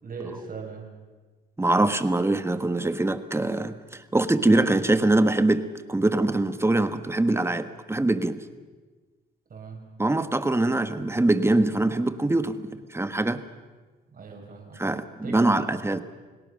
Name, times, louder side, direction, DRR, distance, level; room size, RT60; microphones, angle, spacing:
voice 1, 0.0-0.9 9.5-9.8 14.1-15.7, right 4 dB, 45° right, 1 dB, 5.6 m, -40 dB
voice 2, 1.6-5.6 5.9-8.4 10.0-13.4 14.8-16.0, right 2 dB, 15° right, 11 dB, 1.5 m, -23 dB
29.0 x 18.5 x 6.4 m, 1.3 s
cardioid pair, 90°, 20 cm